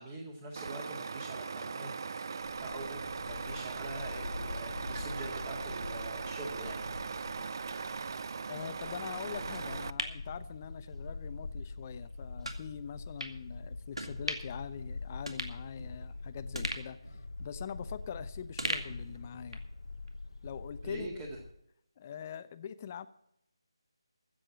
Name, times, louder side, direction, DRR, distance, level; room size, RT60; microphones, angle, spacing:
voice 1, 0.0-2.3 2.6-6.8 20.8-21.3, right 2 dB, 20° right, 0 dB, 2.0 m, -44 dB
Truck, 0.6-9.9, right 5 dB, 45° right, 0.4 m, -39 dB
Bark, 2.4-21.5, left 3 dB, 70° left, 0.8 m, -44 dB
voice 2, 8.5-19.6 20.4-21.3 22.0-23.1, left 8 dB, 25° left, 13 dB, 0.6 m, -43 dB
sound 1, 9.5-11.1 11.5-11.6 12.4-12.6 13.2-13.4 13.9-14.6 14.9-15.0 15.3-16.1 16.5-18.1 18.6-19.7 20.1-20.2, right 1 dB, 90° right, 2.2 m, -39 dB
14.5 x 7.7 x 7.6 m, 0.76 s
figure-of-eight pair, 160°, 3 cm